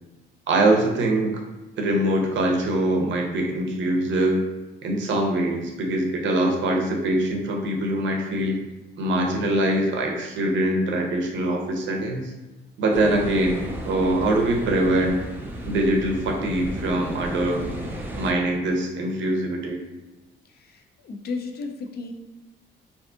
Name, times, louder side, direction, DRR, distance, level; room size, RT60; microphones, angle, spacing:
voice 1, 0.5-1.4 1.8-4.4 4.8-8.6 9.0-12.3 12.8-15.2 15.7-17.6 18.2-19.8, right 1 dB, 70° right, 1 dB, 0.6 m, -23 dB
sound 1, 12.9-18.3, right 1 dB, 10° right, 0.4 m, -34 dB
voice 2, 20.5-22.1, left 4 dB, 55° left, 4 dB, 0.4 m, -34 dB
2.5 x 2.4 x 2.4 m, 1.1 s
cardioid pair, 90°, 20 cm